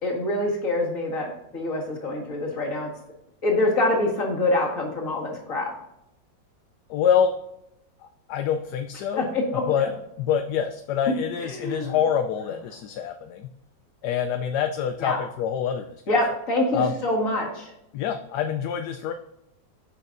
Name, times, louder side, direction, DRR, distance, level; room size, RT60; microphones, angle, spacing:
voice 1, 0.0-2.9 3.4-5.7 9.2-9.9 11.1-11.2 11.4-11.9 15.0-15.2 16.1-17.7, left 2 dB, 45° left, -1 dB, 2.1 m, -25 dB
voice 2, 6.9-7.3 8.3-9.3 9.7-9.9 10.2-13.5 14.0-16.0 16.7-16.9 17.9-19.1, left 8 dB, 75° left, 7 dB, 1.1 m, -25 dB
8.2 x 6.0 x 2.6 m, 0.84 s
omnidirectional pair, 1.9 m